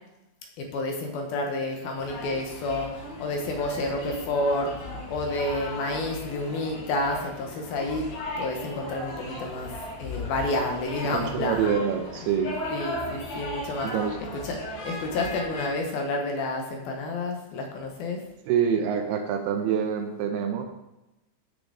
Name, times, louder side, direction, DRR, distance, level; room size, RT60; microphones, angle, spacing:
voice 1, 0.6-4.7 5.1-8.0 8.4-9.7 10.0-11.7 12.7-13.9 14.3-14.6 14.8-18.2, left 2 dB, 65° left, 2 dB, 2.8 m, -29 dB
sound 1, 2.0-15.7, left 1 dB, 90° left, 7.1 m, -37 dB
voice 2, 11.1-12.5 13.8-14.2 18.5-20.6, right 7 dB, 75° right, 5 dB, 2.6 m, -26 dB
15.0 x 6.8 x 4.2 m, 0.98 s
omnidirectional pair, 5.1 m